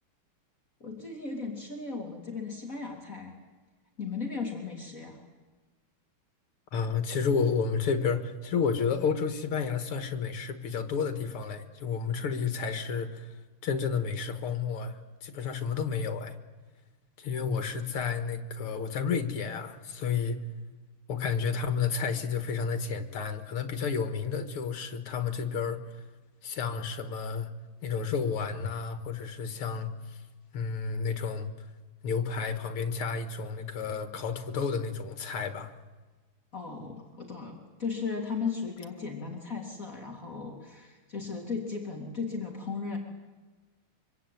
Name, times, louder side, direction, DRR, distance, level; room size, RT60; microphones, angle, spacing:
voice 1, 0.8-3.3 4.0-5.2 36.5-43.0, left 5 dB, 35° left, 1 dB, 3.6 m, -36 dB
voice 2, 6.7-13.3 13.6-16.4 17.2-20.4 21.1-26.0 26.4-27.5 27.8-30.2 30.5-31.5 32.0-35.7, left 5 dB, 85° left, 8 dB, 2.7 m, -31 dB
25.0 x 24.5 x 9.4 m, 1.3 s
omnidirectional pair, 2.4 m